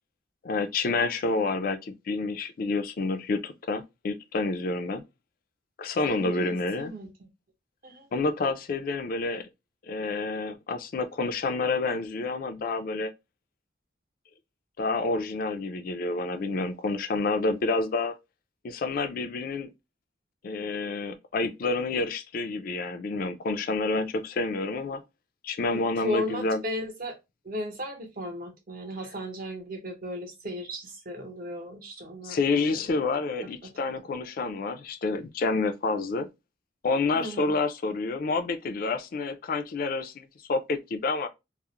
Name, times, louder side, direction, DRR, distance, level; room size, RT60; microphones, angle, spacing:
voice 1, 0.4-5.0 5.8-6.9 8.1-9.5 9.9-13.1 14.8-18.2 18.6-19.7 20.4-25.0 25.4-26.6 32.2-36.3 36.8-41.3, left 3 dB, 50° left, 0.3 m, -29 dB
voice 2, 6.0-7.3 7.8-8.1 25.6-27.2 27.4-32.4 32.7-32.8 33.6-33.7 37.1-37.5, left 1 dB, 50° right, 0.7 m, -36 dB
2.4 x 2.0 x 2.8 m
head